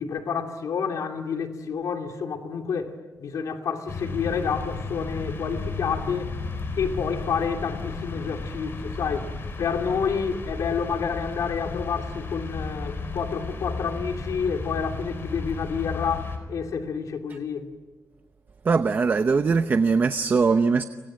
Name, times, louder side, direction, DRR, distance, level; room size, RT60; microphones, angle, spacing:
voice 1, 0.0-6.3 6.8-9.3 9.6-17.7, left 6 dB, 85° left, 2.8 m, -29 dB
sound 1, 3.9-16.4, left 3 dB, 45° left, 4.5 m, -34 dB
voice 2, 18.6-20.8, right 4 dB, 35° right, 0.8 m, -21 dB
30.0 x 24.5 x 7.6 m
wide cardioid pair, 175°, 6 cm